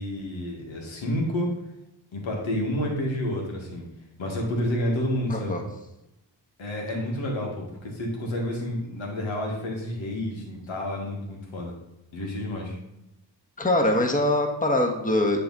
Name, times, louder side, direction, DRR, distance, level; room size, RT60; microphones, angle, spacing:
voice 1, 0.0-1.5 2.1-3.8 4.2-5.5 6.6-11.7 12.1-12.8, left 1 dB, 80° left, -1 dB, 1.9 m, -29 dB
voice 2, 5.3-5.6 13.6-15.4, left 1 dB, 15° left, 3 dB, 1.3 m, -23 dB
10.0 x 3.5 x 4.0 m, 0.89 s
supercardioid pair, 40°, 46 cm